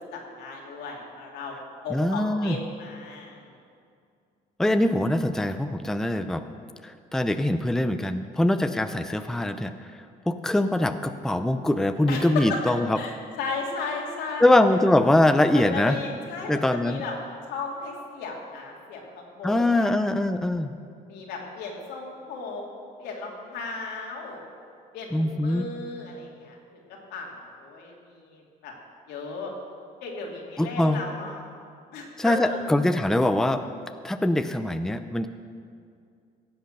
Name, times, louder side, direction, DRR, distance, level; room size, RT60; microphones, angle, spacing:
voice 1, 0.1-1.6 1.8-3.5 12.1-12.6 12.9-14.5 15.5-17.2 17.5-19.9 21.1-22.7 23.0-24.4 24.9-26.6 27.1-28.7 29.1-29.5 30.0-31.5 31.9-32.6, left 3 dB, 85° left, -1 dB, 2.8 m, -35 dB
voice 2, 1.9-2.6 4.6-6.4 6.8-9.7 10.3-13.0 14.4-16.0 16.5-17.0 19.4-20.7 25.1-25.6 30.6-31.0 32.2-33.6 34.0-35.3, left 1 dB, 5° left, 9 dB, 0.5 m, -23 dB
16.0 x 8.0 x 6.6 m, 2.3 s
cardioid pair, 110°, 17 cm